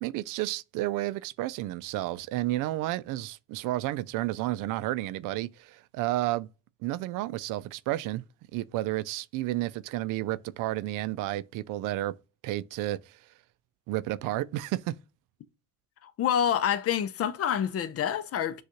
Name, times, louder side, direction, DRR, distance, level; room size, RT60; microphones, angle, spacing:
voice 1, 0.0-6.5 6.8-8.2 8.5-12.2 12.4-13.2 13.9-14.9, right 16 dB, 70° right, 0.5 m, -31 dB
voice 2, 16.0-18.6, left 9 dB, 45° left, 0.5 m, -27 dB
6.3 x 2.4 x 2.8 m
supercardioid pair, 85°, 33 cm